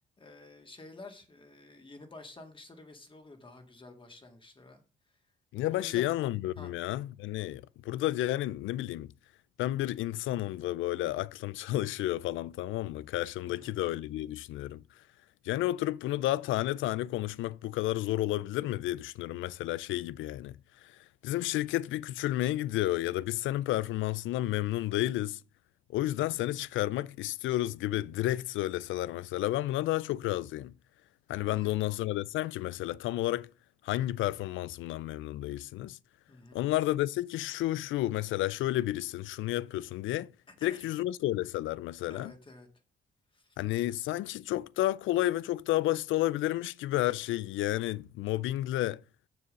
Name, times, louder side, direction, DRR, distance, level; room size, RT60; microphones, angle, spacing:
voice 1, 0.2-4.8 5.1-5.2 5.6-6.2 6.6-6.7 13.4-13.8 31.4-31.8 36.3-36.6 40.5-40.9 42.1-42.7 43.3-43.6, left 2 dB, 25° left, 2.0 m, -51 dB
voice 2, 5.5-9.1 9.6-14.8 15.4-25.4 25.9-30.7 31.3-33.5 33.8-36.0 36.5-40.3 40.6-42.3 43.6-49.0, left 15 dB, 80° left, 0.4 m, -31 dB
6.9 x 6.8 x 5.3 m
cardioid pair, 90°, 20 cm